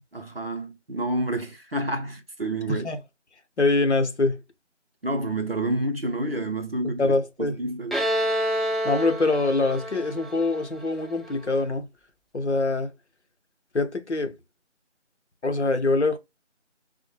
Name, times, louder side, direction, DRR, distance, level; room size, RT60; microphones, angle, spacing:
voice 1, 0.1-2.9 5.0-7.1 7.4-8.0, right 1 dB, 50° right, 0.6 m, -29 dB
voice 2, 2.7-3.0 3.6-4.4 7.0-7.6 8.8-11.9 12.3-12.9 13.7-14.4 15.4-16.2, left 3 dB, 65° left, 0.7 m, -24 dB
Bowed string instrument, 7.9-11.5, equal, ahead, 0.4 m, -28 dB
3.7 x 2.1 x 3.0 m
figure-of-eight pair, 175°, 37 cm